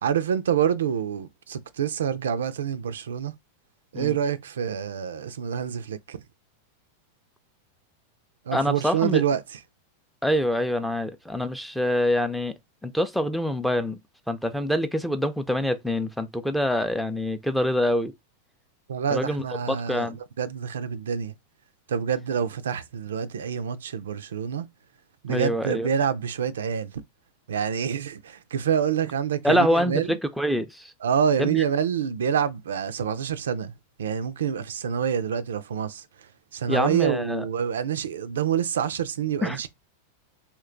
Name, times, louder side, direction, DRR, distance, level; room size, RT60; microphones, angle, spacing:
voice 1, 0.0-3.3 3.9-6.2 8.5-9.6 18.9-20.1 20.4-21.3 21.9-24.7 25.2-26.9 27.5-30.2 31.0-33.7 34.0-36.0 36.5-39.7, right 8 dB, 85° right, 0.3 m, -27 dB
voice 2, 8.5-9.2 10.2-12.5 12.8-14.0 14.3-18.1 19.1-20.2 25.3-25.9 29.4-30.9 31.4-31.6 36.7-37.4 39.4-39.6, left 1 dB, ahead, 0.4 m, -25 dB
2.8 x 2.2 x 3.7 m
hypercardioid pair, 110°, 0 cm